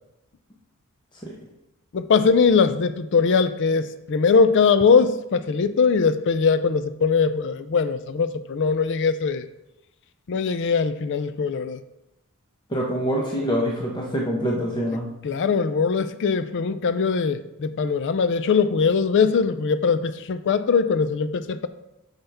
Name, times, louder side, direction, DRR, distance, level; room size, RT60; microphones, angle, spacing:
voice 1, 1.9-9.4 10.3-11.8 15.2-21.7, left 5 dB, 55° left, 12 dB, 0.4 m, -21 dB
voice 2, 12.7-15.1, equal, 20° left, -2 dB, 0.9 m, -25 dB
9.1 x 5.6 x 3.4 m, 0.90 s
head